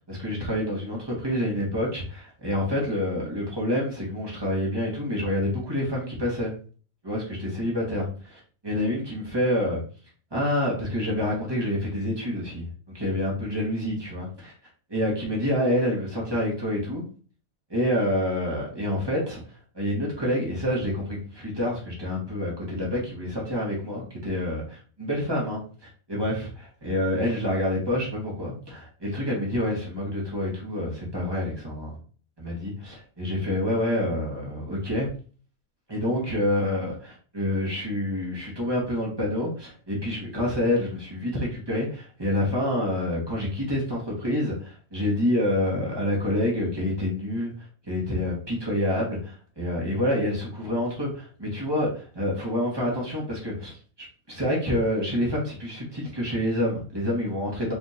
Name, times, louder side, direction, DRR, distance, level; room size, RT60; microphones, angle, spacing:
voice 1, 0.0-6.5 7.0-9.8 10.3-12.6 12.9-14.5 14.9-17.0 17.7-19.4 19.7-25.6 26.1-31.9 32.4-35.1 35.9-47.5 47.8-53.7 54.3-57.7, left 1 dB, 20° right, -4 dB, 1.5 m, -27 dB
4.2 x 3.6 x 2.8 m, 0.40 s
omnidirectional pair, 1.5 m